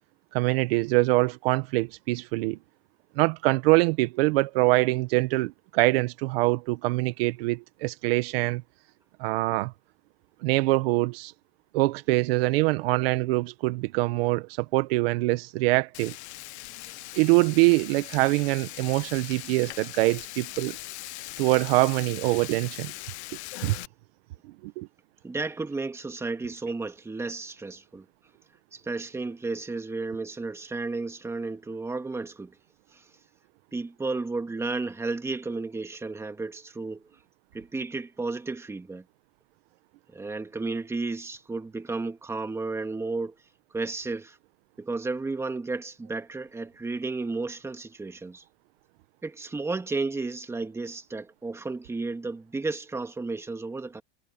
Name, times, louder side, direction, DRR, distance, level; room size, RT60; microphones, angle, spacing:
voice 1, 0.3-2.6 3.2-8.6 9.2-9.7 10.4-11.3 11.7-16.1 17.1-20.8 21.4-22.9 23.6-23.8 24.6-24.9, right 21 dB, 60° right, 1.4 m, -24 dB
Frying (food), 15.9-23.9, left 17 dB, 75° left, 1.2 m, -40 dB
voice 2, 25.2-28.1 28.7-32.6 32.9-33.1 33.7-37.1 37.5-39.0 40.1-43.3 43.7-44.4 44.8-48.4 49.2-54.0, right 3 dB, 10° right, 2.0 m, -33 dB
supercardioid pair, 145°, 33 cm